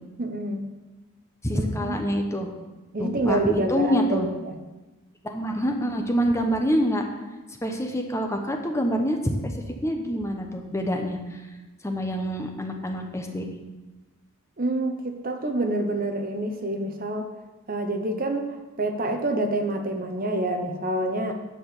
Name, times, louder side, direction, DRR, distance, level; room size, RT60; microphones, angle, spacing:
voice 1, 0.2-0.7 1.5-2.0 2.9-4.6 14.6-17.3 17.7-21.3, right 2 dB, 40° right, 5 dB, 0.9 m, -27 dB
voice 2, 1.4-2.5 3.0-4.3 5.2-7.0 7.6-9.5 9.8-11.4 11.8-13.5, equal, 15° left, 3 dB, 0.9 m, -26 dB
9.8 x 6.0 x 6.7 m, 1.1 s
head